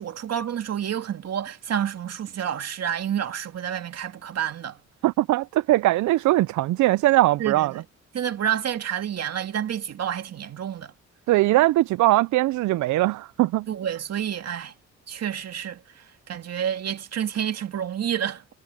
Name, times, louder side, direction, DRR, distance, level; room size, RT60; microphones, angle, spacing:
voice 1, 0.0-4.8 7.4-7.8 8.1-10.9 13.7-14.7 15.1-18.4, right 9 dB, 55° right, 2.2 m, -29 dB
voice 2, 5.0-7.7 11.3-13.7, right 17 dB, 75° right, 0.5 m, -20 dB
cardioid pair, 90°, 30 cm